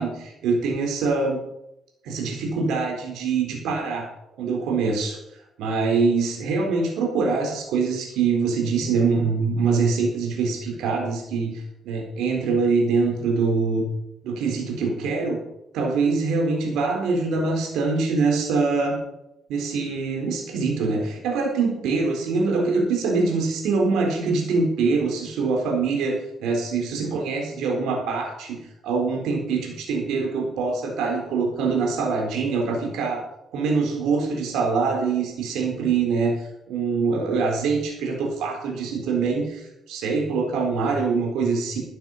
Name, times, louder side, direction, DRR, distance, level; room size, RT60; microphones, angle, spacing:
voice 1, 0.0-1.4 2.0-4.1 4.4-5.2 5.6-13.8 14.2-15.4 15.7-19.0 19.5-28.6 28.8-33.2 33.5-36.3 36.7-41.8, right 4 dB, 90° right, 1 dB, 3.9 m, -24 dB
13.0 x 9.5 x 5.7 m, 0.84 s
cardioid pair, 90°, 0 cm